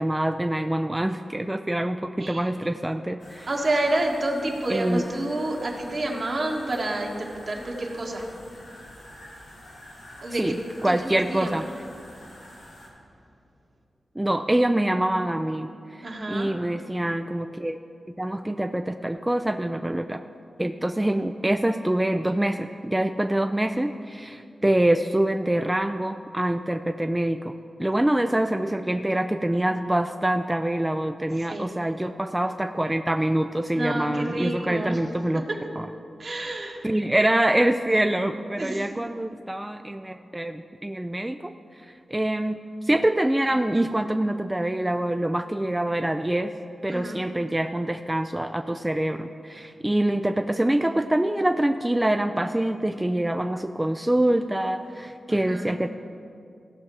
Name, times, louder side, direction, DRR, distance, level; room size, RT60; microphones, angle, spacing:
voice 1, 0.0-3.5 4.7-5.0 10.4-10.6 10.8-11.6 14.2-17.8 18.1-20.2 20.6-27.5 27.8-35.4 35.8-35.9 36.8-41.5 41.8-46.6 46.8-55.9, right 1 dB, 15° right, 7 dB, 0.4 m, -25 dB
sound 1, 3.2-12.9, left 1 dB, 90° left, 2.7 m, -47 dB
voice 2, 3.5-8.3 10.2-10.4 10.8-11.6 16.0-16.5 31.3-31.7 33.7-35.0 35.5-35.6 36.2-36.8 38.6-39.0 46.9-47.2 55.3-55.7, right 1 dB, 60° right, -1 dB, 1.8 m, -29 dB
16.0 x 5.7 x 4.8 m, 2.4 s
cardioid pair, 40°, 0 cm